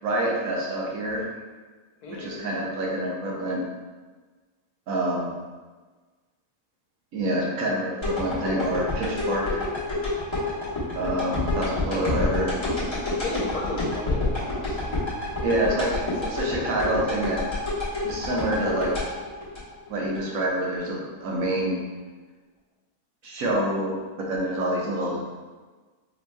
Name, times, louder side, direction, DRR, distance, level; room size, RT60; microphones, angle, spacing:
voice 1, 0.0-1.3 2.1-3.6 4.9-5.3 7.1-9.7 10.9-12.5 15.4-17.4 18.0-19.1 19.9-21.8 23.2-25.2, right 1 dB, 60° right, -3 dB, 1.2 m, -27 dB
voice 2, 2.0-2.5 13.1-16.4, left 3 dB, 75° left, -1 dB, 1.2 m, -36 dB
sound 1, 8.0-20.2 20.6-20.7, left 2 dB, 20° left, 0.9 m, -28 dB
5.2 x 2.9 x 2.2 m, 1.4 s
omnidirectional pair, 1.7 m